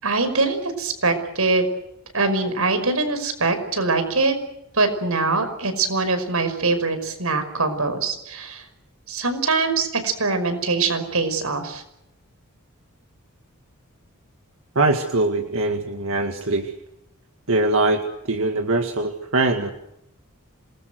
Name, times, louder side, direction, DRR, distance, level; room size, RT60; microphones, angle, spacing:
voice 1, 0.0-1.6 2.1-4.4 4.7-8.6 9.1-11.8, right 3 dB, 80° right, 9 dB, 5.5 m, -23 dB
voice 2, 14.8-16.7 17.5-19.7, right 2 dB, 65° right, 4 dB, 2.0 m, -22 dB
27.5 x 21.0 x 8.0 m, 0.82 s
head